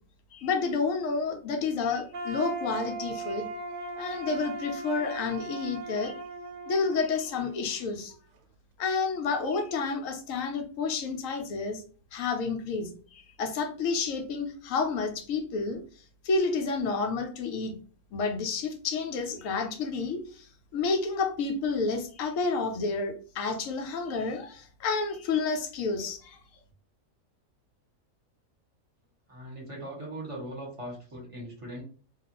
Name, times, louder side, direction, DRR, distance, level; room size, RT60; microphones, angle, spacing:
voice 1, 0.3-3.5 4.0-6.2 6.7-8.2 8.8-11.8 12.1-15.8 16.2-17.8 18.1-26.4, left 4 dB, 75° left, 5 dB, 1.0 m, -30 dB
sound 1, 2.1-8.0, right 3 dB, 90° right, 0.4 m, -38 dB
voice 2, 29.3-31.8, right 1 dB, 30° right, -4 dB, 0.9 m, -40 dB
2.4 x 2.3 x 2.9 m, 0.42 s
omnidirectional pair, 1.5 m